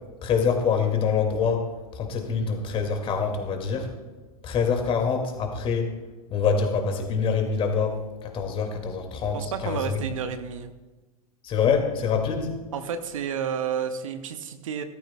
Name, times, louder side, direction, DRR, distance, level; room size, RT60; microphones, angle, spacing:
voice 1, 0.2-1.7 2.0-3.9 4.4-5.9 6.3-8.0 8.3-9.4 9.6-9.9 11.4-12.5, left 6 dB, 30° left, 4 dB, 2.1 m, -25 dB
voice 2, 9.3-10.7 12.7-14.8, right 7 dB, 60° right, 9 dB, 0.9 m, -31 dB
17.0 x 14.0 x 2.2 m, 1.2 s
figure-of-eight pair, 90°, 19 cm